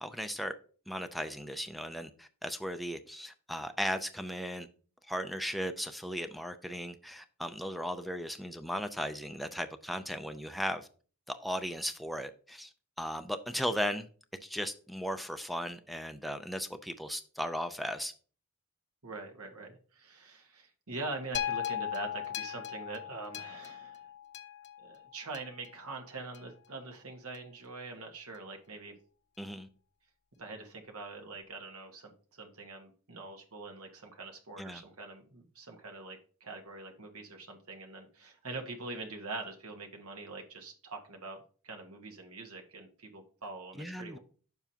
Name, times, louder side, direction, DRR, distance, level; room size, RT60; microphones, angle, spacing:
voice 1, 0.0-0.5 0.9-4.7 5.1-10.9 11.3-12.7 13.0-14.1 14.4-18.1 29.4-29.7 34.6-34.8 43.8-44.2, equal, ahead, 0.4 m, -36 dB
voice 2, 19.0-24.0 24.8-28.9 30.4-44.2, right 3 dB, 75° right, 1.4 m, -44 dB
sound 1, 21.3-25.7 26.3-26.4, left 10 dB, 50° left, 0.5 m, -38 dB
9.0 x 7.0 x 2.8 m
head